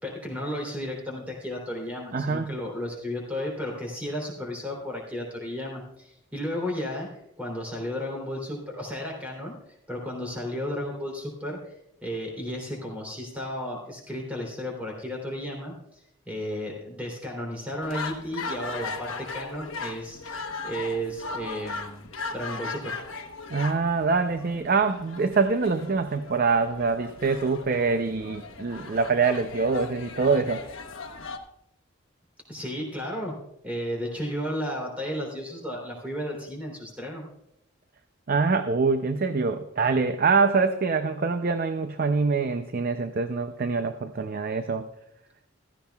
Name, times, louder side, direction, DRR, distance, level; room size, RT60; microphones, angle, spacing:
voice 1, 0.0-9.5 9.9-11.7 12.0-15.7 16.2-22.1 22.3-22.9 32.5-33.4 33.6-37.2, equal, 5° right, -1 dB, 3.1 m, -33 dB
voice 2, 2.1-2.5 23.5-30.6 38.3-44.9, right 4 dB, 45° right, 9 dB, 0.5 m, -25 dB
sound 1, 17.8-31.4, left 4 dB, 70° left, 1.1 m, -38 dB
16.0 x 13.5 x 2.3 m, 0.80 s
head